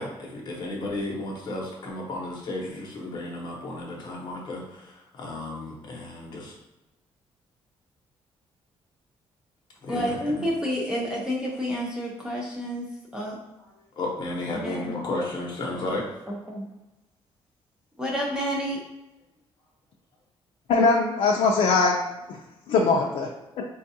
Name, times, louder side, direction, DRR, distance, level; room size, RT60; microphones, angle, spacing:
voice 1, 0.0-6.5 9.8-10.4 13.8-16.1, left 2 dB, 45° left, -2 dB, 0.8 m, -33 dB
voice 2, 9.9-12.8 13.1-13.4 14.5-15.0 16.5-16.7 18.0-18.8, equal, 5° right, -3 dB, 0.5 m, -29 dB
voice 3, 20.7-22.0 22.7-23.3 23.6-23.7, left 4 dB, 70° left, -1 dB, 0.4 m, -21 dB
4.4 x 2.3 x 2.7 m, 1.0 s
cardioid pair, 175°, 10 cm